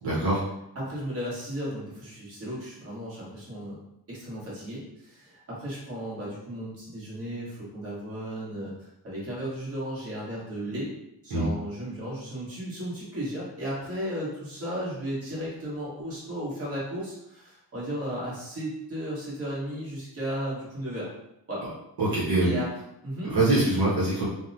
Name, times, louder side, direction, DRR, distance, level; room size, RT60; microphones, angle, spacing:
voice 1, 0.0-0.4 11.3-11.5 22.0-22.5 23.2-24.3, right 2 dB, 65° right, -8 dB, 1.0 m, -23 dB
voice 2, 0.7-3.8 4.1-10.9 11.2-21.1 21.5-21.6 22.4-22.7 23.0-23.4, equal, 35° right, -7 dB, 1.4 m, -35 dB
2.8 x 2.1 x 2.6 m, 0.83 s
cardioid pair, 100°, 38 cm